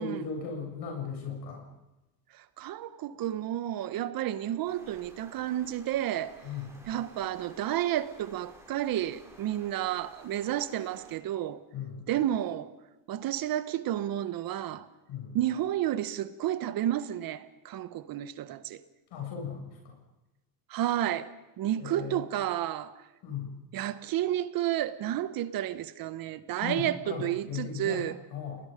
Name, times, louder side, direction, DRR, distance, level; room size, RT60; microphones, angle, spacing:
voice 1, 0.0-1.6 6.4-6.7 11.7-12.0 15.1-15.4 19.1-20.0 21.8-22.2 23.2-23.5 26.6-28.1 28.3-28.6, left 6 dB, 55° left, 7.4 m, -37 dB
voice 2, 2.6-6.3 6.9-11.6 12.1-12.7 13.1-14.9 15.3-18.8 20.7-22.9 23.7-28.2, right 12 dB, 45° right, 1.4 m, -31 dB
sound 1, 4.6-11.2, right 1 dB, 5° right, 6.1 m, -55 dB
30.0 x 20.5 x 5.3 m
supercardioid pair, 105°, 48 cm